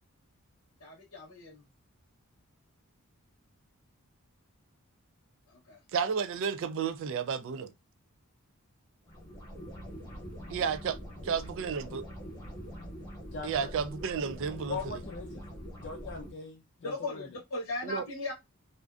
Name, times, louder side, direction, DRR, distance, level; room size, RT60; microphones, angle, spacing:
voice 1, 0.8-1.6 5.5-5.8 16.8-18.3, left 2 dB, 80° left, 0.8 m, -38 dB
voice 2, 5.9-7.7 10.5-11.0 11.2-12.1 13.4-15.0 17.8-18.0, right 6 dB, 60° right, 0.3 m, -32 dB
sound 1, 9.1-16.3, equal, 20° left, 0.9 m, -44 dB
voice 3, 13.3-13.7 14.7-15.4 15.8-17.3, left 4 dB, 50° left, 0.4 m, -40 dB
2.4 x 2.2 x 2.3 m
head